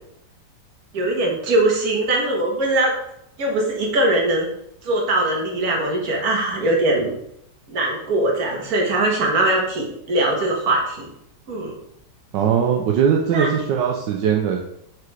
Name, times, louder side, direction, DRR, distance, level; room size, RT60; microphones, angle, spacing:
voice 1, 0.9-2.9 3.4-4.5 4.8-7.1 7.7-11.1 11.5-11.8 13.3-13.5, right 1 dB, 55° right, -1 dB, 1.9 m, -21 dB
voice 2, 12.3-14.6, right 8 dB, 80° right, 1 dB, 1.4 m, -20 dB
4.8 x 4.7 x 4.8 m, 0.75 s
omnidirectional pair, 2.0 m